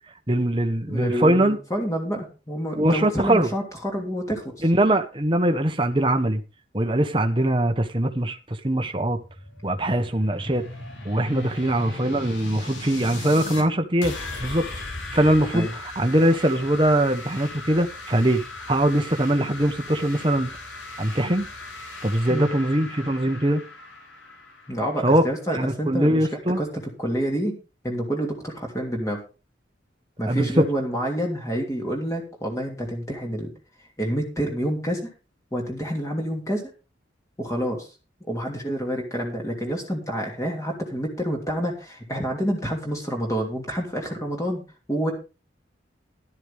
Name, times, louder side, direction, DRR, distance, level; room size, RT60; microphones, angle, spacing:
voice 1, 0.3-1.6 2.8-3.5 4.6-6.4 6.7-9.2 9.6-10.6 11.0-14.1 14.4-14.7 15.1-15.7 16.0-18.4 18.7-20.5 21.0-21.5 22.0-23.6 25.0-25.2 25.5-26.6 30.2-30.6, right 1 dB, 25° right, 1.2 m, -22 dB
voice 2, 0.9-4.7 11.3-11.5 15.5-15.7 22.3-22.5 24.7-27.6 27.8-29.2 30.2-33.5 34.0-35.1 35.5-36.7 37.4-37.9 38.3-44.6 44.9-45.1, equal, 15° left, 2.9 m, -28 dB
sound 1, 9.1-13.6 14.0-25.6, left 2 dB, 85° left, 4.0 m, -38 dB
13.0 x 12.0 x 3.6 m
head